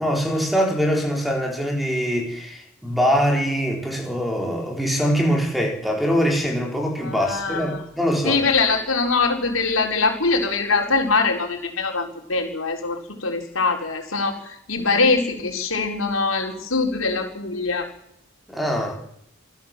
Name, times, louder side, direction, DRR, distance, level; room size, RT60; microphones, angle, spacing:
voice 1, 0.0-8.4 18.5-18.9, equal, ahead, 1 dB, 3.8 m, -23 dB
voice 2, 7.0-7.8 8.2-17.9, left 4 dB, 80° left, 2 dB, 4.5 m, -23 dB
26.5 x 14.5 x 7.5 m, 0.75 s
head